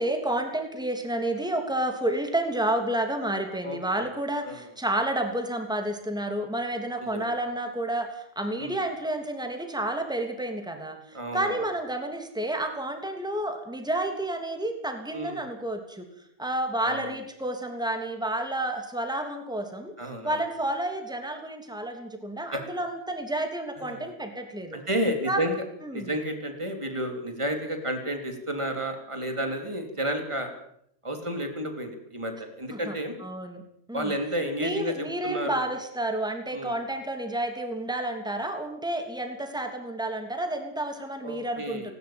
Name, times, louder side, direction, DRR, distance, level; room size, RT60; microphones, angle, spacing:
voice 1, 0.0-16.1 16.4-19.9 20.2-24.8 25.3-25.4 25.8-26.1 32.7-32.9 33.2-33.6 33.9-34.1 34.6-41.9, right 1 dB, 5° right, 5 dB, 3.1 m, -30 dB
voice 2, 3.6-4.1 4.4-4.6 7.0-7.3 8.6-8.8 11.1-11.6 15.1-15.4 16.8-17.1 20.0-20.4 22.5-22.6 23.8-24.1 24.7-25.7 25.9-30.5 31.0-33.1 33.9-35.6 36.5-36.7 41.2-41.9, equal, 25° right, 5 dB, 3.6 m, -31 dB
18.5 x 18.5 x 8.9 m, 0.69 s
omnidirectional pair, 1.3 m